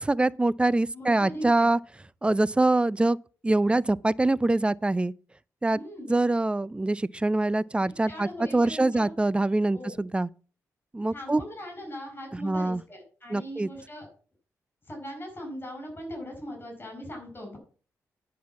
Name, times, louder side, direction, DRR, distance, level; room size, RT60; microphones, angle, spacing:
voice 1, 0.0-1.8 2.2-3.2 3.4-5.1 5.6-5.8 6.1-8.3 8.5-10.3 10.9-11.4 12.4-12.8 13.3-13.7, right 2 dB, 15° right, 0.4 m, -24 dB
voice 2, 0.9-1.7 5.7-6.1 8.0-9.1 9.7-10.0 11.1-14.1 14.9-17.6, equal, 35° left, 5.0 m, -40 dB
10.0 x 4.8 x 7.1 m
cardioid pair, 60°, 6 cm